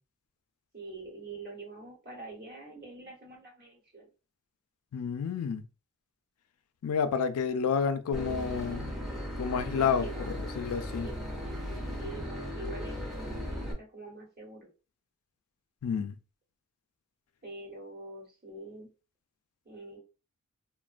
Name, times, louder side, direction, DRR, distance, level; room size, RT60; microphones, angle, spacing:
voice 1, 0.7-4.1 9.7-10.4 11.0-11.2 12.0-14.7 17.4-18.9 19.6-20.0, right 2 dB, 45° right, 1.1 m, -45 dB
voice 2, 4.9-5.6 6.8-8.9 9.4-11.1 15.8-16.1, left 6 dB, 80° left, 0.4 m, -30 dB
Boat Water vehicle / Engine, 8.1-13.7, equal, ahead, 0.6 m, -37 dB
3.0 x 2.1 x 2.4 m
head